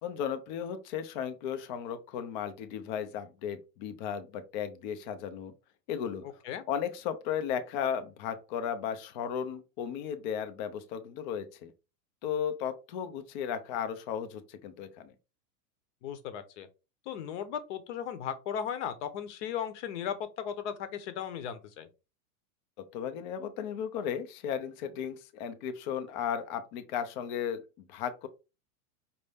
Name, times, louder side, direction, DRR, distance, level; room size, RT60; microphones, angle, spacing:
voice 1, 0.0-5.5 5.9-6.2 6.7-11.7 12.2-15.1 22.9-27.6 27.9-28.3, left 8 dB, 35° left, 0.5 m, -35 dB
voice 2, 16.0-16.7 17.1-21.9, left 8 dB, 55° left, 0.9 m, -36 dB
5.4 x 2.6 x 3.4 m
supercardioid pair, 160°, 44 cm